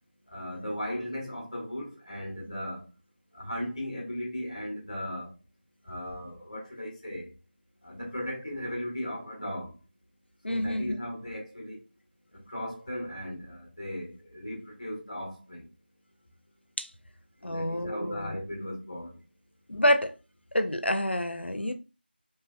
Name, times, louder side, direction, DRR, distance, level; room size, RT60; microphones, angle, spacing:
voice 1, 0.3-2.8 3.3-5.3 5.9-7.3 7.8-9.7 10.5-11.8 12.3-15.7 17.4-19.2, equal, 35° left, 1.1 m, -37 dB
voice 2, 10.4-10.9 16.8-16.9 17.4-18.4 19.7-20.1 20.5-21.7, equal, 85° left, 0.6 m, -27 dB
3.3 x 2.9 x 2.2 m
figure-of-eight pair, 170°, 6 cm